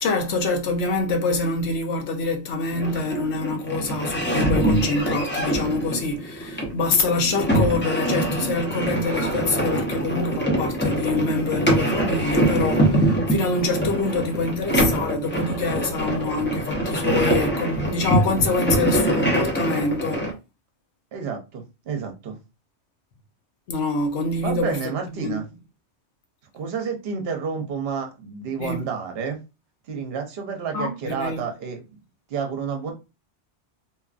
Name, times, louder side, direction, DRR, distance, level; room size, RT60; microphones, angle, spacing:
voice 1, 0.0-20.2 23.7-24.8 25.2-25.4 28.6-28.9 30.7-31.4, left 3 dB, 75° left, 1.0 m, -25 dB
sound 1, 2.7-20.3, right 1 dB, 15° left, 0.5 m, -24 dB
voice 2, 21.1-22.4 24.4-25.4 26.5-29.4 29.9-32.0 32.3-32.9, right 6 dB, 65° right, 0.9 m, -30 dB
2.9 x 2.4 x 2.4 m
omnidirectional pair, 1.2 m